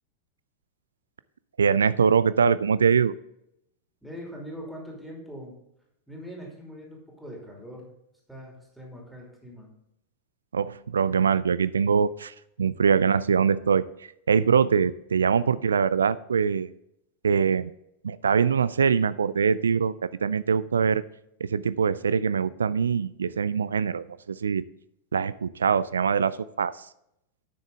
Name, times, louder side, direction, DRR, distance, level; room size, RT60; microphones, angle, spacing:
voice 1, 1.6-3.1 10.5-13.8 14.3-16.7 17.2-17.7 18.0-21.0 21.4-24.6 25.1-26.9, right 6 dB, 70° right, 17 dB, 0.3 m, -23 dB
voice 2, 4.0-5.5 6.1-7.9 8.3-9.7, equal, ahead, -2 dB, 2.8 m, -42 dB
10.5 x 6.5 x 3.7 m, 0.79 s
figure-of-eight pair, 90°, 0 cm